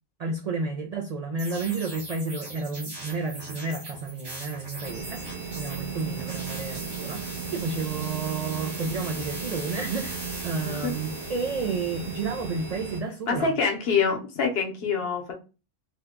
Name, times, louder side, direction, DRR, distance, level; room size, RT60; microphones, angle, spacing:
voice 1, 0.2-13.5, right 4 dB, 85° right, 0.3 m, -31 dB
sound 1, 1.4-12.8, right 1 dB, 25° right, 0.6 m, -40 dB
sound 2, 4.8-13.0, right 6 dB, 55° right, 0.8 m, -36 dB
voice 2, 13.3-15.3, left 5 dB, 60° left, 0.9 m, -26 dB
2.8 x 2.2 x 3.5 m
omnidirectional pair, 1.2 m